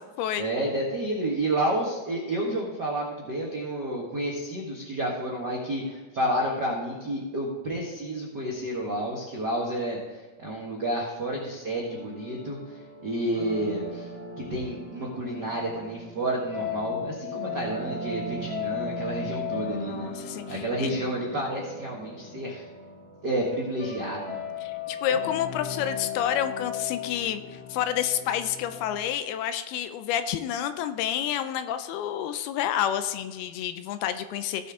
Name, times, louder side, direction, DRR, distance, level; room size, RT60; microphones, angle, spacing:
voice 1, 0.4-12.8 13.0-14.1 14.4-20.1 20.5-22.6 23.2-24.4, right 1 dB, 60° right, -3 dB, 1.0 m, -30 dB
sound 1, 11.9-29.1, left 5 dB, 30° left, 1.8 m, -36 dB
voice 2, 19.8-20.9 24.6-34.7, left 10 dB, 80° left, 10 dB, 2.4 m, -29 dB
17.0 x 6.9 x 3.6 m, 1.2 s
omnidirectional pair, 4.7 m